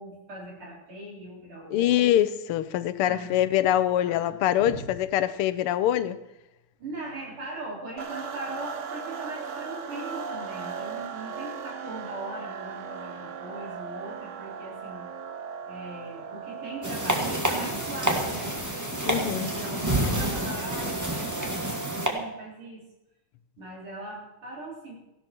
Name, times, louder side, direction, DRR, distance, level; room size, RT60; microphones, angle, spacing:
voice 1, 0.0-2.1 3.0-3.3 4.0-4.9 6.8-15.1 15.7-18.5 19.4-22.8 23.6-24.9, right 2 dB, 75° right, 4.7 m, -40 dB
voice 2, 1.7-6.2 19.1-19.5, left 12 dB, 85° left, 1.6 m, -24 dB
sound 1, 8.0-22.5, right 6 dB, 55° right, 0.9 m, -38 dB
sound 2, 16.8-22.1, right 1 dB, 10° right, 1.7 m, -28 dB
16.5 x 12.0 x 4.5 m
omnidirectional pair, 2.4 m